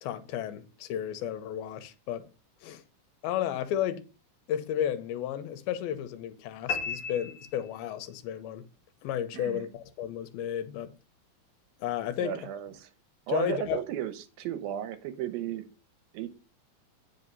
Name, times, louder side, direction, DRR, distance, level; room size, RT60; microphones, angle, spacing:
voice 1, 0.0-2.3 2.6-2.8 3.2-4.1 4.5-8.7 9.0-10.9 11.8-12.5 13.3-13.8, left 10 dB, 85° left, 2.8 m, -33 dB
sound 1, 6.7-8.2, left 5 dB, 60° left, 1.2 m, -35 dB
voice 2, 9.3-9.7 12.2-12.9 13.3-15.6 16.1-16.3, right 10 dB, 80° right, 2.6 m, -34 dB
9.0 x 5.8 x 5.4 m
omnidirectional pair, 4.2 m